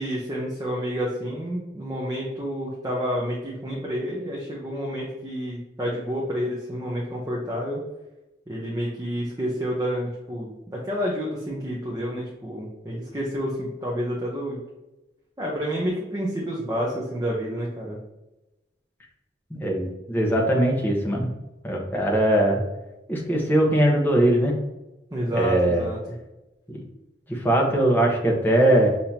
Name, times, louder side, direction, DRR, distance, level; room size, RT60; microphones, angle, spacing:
voice 1, 0.0-7.8 8.5-14.6 15.4-18.0 25.1-26.0, equal, 20° right, -4 dB, 0.7 m, -29 dB
voice 2, 19.5-21.3 21.6-22.6 23.1-24.5 25.3-25.9 26.7-26.8 27.3-28.9, right 1 dB, 10° left, -1 dB, 0.9 m, -21 dB
6.7 x 2.8 x 2.8 m, 1.0 s
head